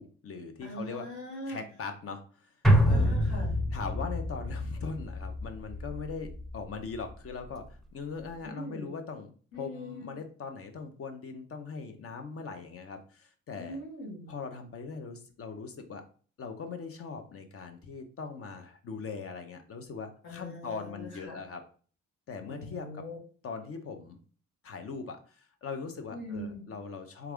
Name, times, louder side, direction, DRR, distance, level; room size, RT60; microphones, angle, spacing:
voice 1, 0.0-1.1 1.5-2.5 2.9-3.1 3.7-13.8 14.3-16.0 16.4-21.6 22.3-23.0 23.4-24.2 24.6-27.3, left 5 dB, 50° left, 6 dB, 0.6 m, -40 dB
voice 2, 0.6-1.6 2.9-3.6 8.4-8.9 9.5-10.2 13.6-14.3 20.2-21.4 22.5-23.2 26.1-26.7, left 1 dB, 75° left, -1 dB, 1.7 m, -41 dB
sound 1, 2.6-7.1 7.4-7.5, equal, ahead, 0.6 m, -27 dB
3.4 x 2.3 x 3.5 m, 0.42 s
cardioid pair, 90°, 30 cm